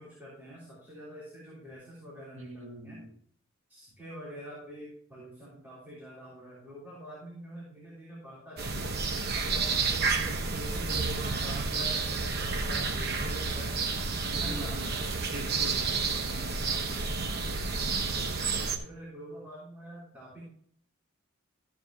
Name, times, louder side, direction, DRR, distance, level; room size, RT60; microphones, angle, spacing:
voice 1, 0.0-3.0 3.7-9.0 9.3-13.7 14.2-15.0 15.3-15.6 16.3-16.8 17.6-18.0 18.3-20.4, equal, 10° right, -9 dB, 3.5 m, -45 dB
voice 2, 2.3-3.2 9.6-9.8 14.3-16.4 18.4-18.8, right 2 dB, 80° right, 1 dB, 1.8 m, -44 dB
sound 1, 8.6-18.8, right 4 dB, 50° right, 1.0 m, -30 dB
14.0 x 7.1 x 2.9 m, 0.62 s
head